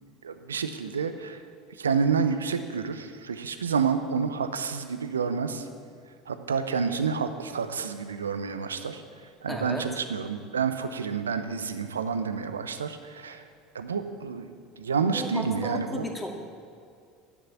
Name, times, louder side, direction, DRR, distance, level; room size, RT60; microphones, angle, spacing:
voice 1, 0.2-1.4 1.8-5.7 6.3-9.0 9.4-13.4 13.7-16.0, right 6 dB, 85° right, 9 dB, 0.8 m, -29 dB
voice 2, 9.5-9.9 15.0-16.4, equal, 5° left, 2 dB, 2.2 m, -34 dB
11.0 x 8.4 x 8.3 m, 2.4 s
figure-of-eight pair, 70°, 0 cm